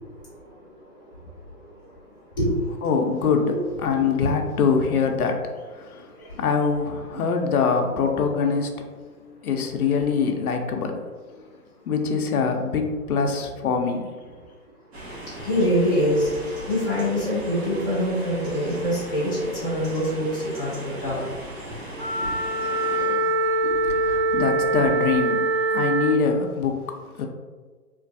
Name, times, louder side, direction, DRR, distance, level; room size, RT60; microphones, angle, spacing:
voice 1, 2.8-6.1 6.4-11.0 11.9-14.1 23.9-27.3, left 5 dB, 70° left, 4 dB, 0.6 m, -24 dB
sound 1, 14.9-23.0, right 1 dB, 45° right, 0.7 m, -38 dB
voice 2, 15.4-16.3 16.7-19.3 19.6-20.3 20.6-20.7 21.0-21.2 23.1-23.2, equal, 15° left, -12 dB, 0.7 m, -24 dB
Wind instrument woodwind instrument, 21.9-26.2, right 2 dB, 15° right, 0.9 m, -23 dB
3.1 x 2.5 x 2.5 m, 1.4 s
hypercardioid pair, 165°, 46 cm